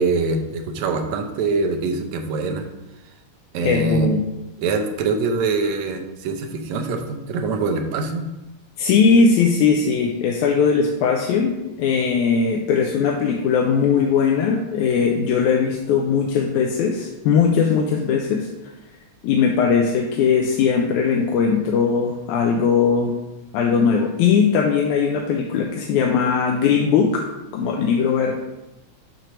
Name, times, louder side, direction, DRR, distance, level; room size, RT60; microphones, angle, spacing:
voice 1, 0.0-2.7 3.5-4.1 4.6-8.3, right 3 dB, 75° right, 4 dB, 2.0 m, -23 dB
voice 2, 3.6-4.3 8.8-18.5 19.2-23.1 23.5-27.2 27.5-28.3, left 6 dB, 85° left, 1 dB, 2.1 m, -19 dB
6.6 x 4.5 x 6.1 m, 0.99 s
omnidirectional pair, 3.5 m